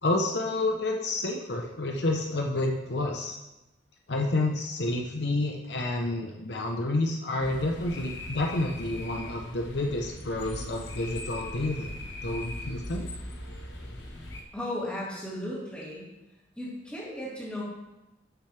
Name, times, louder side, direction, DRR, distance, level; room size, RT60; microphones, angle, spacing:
voice 1, 0.0-3.4 4.1-11.9 12.2-13.1, left 2 dB, 65° left, 1 dB, 0.9 m, -29 dB
sound 1, 7.4-14.4, left 1 dB, 80° left, 1.4 m, -40 dB
voice 2, 14.5-16.1 16.6-17.6, left 1 dB, 5° left, -7 dB, 2.8 m, -35 dB
12.0 x 6.6 x 3.4 m, 1.0 s
head